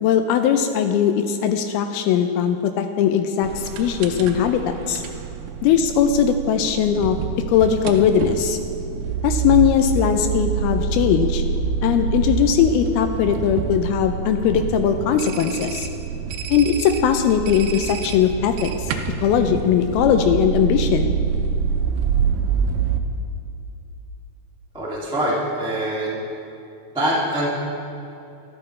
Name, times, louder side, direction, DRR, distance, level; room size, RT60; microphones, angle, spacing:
voice 1, 0.0-5.0 5.6-7.2 7.5-8.6 9.2-11.4 11.8-15.9 16.5-18.7 19.2-21.1, left 8 dB, 80° left, 7 dB, 2.3 m, -19 dB
sound 1, 3.4-23.0, right 6 dB, 80° right, 2.4 m, -26 dB
voice 2, 24.7-26.2 26.9-27.5, right 1 dB, 5° right, -7 dB, 0.5 m, -24 dB
13.0 x 12.0 x 3.2 m, 2.7 s
omnidirectional pair, 4.7 m